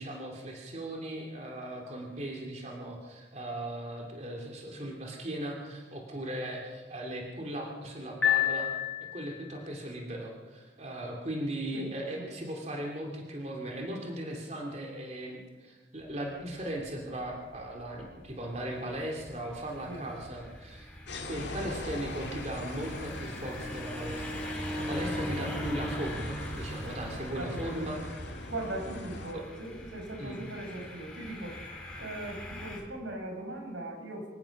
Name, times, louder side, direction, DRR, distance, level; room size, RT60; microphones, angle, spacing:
voice 1, 0.0-8.7 9.1-20.9 21.3-28.0 29.3-29.4 30.2-30.4, right 1 dB, 35° right, 0 dB, 2.9 m, -38 dB
Piano, 8.2-9.5, left 11 dB, 85° left, 3.7 m, -28 dB
sound 1, 16.0-32.8, left 1 dB, 5° left, 4.6 m, -41 dB
sound 2, 21.1-29.3, left 2 dB, 65° left, 2.5 m, -42 dB
voice 2, 27.2-28.1 28.5-31.6 32.0-34.3, right 1 dB, 85° right, 2 dB, 5.3 m, -39 dB
25.0 x 18.0 x 6.1 m, 1.3 s
head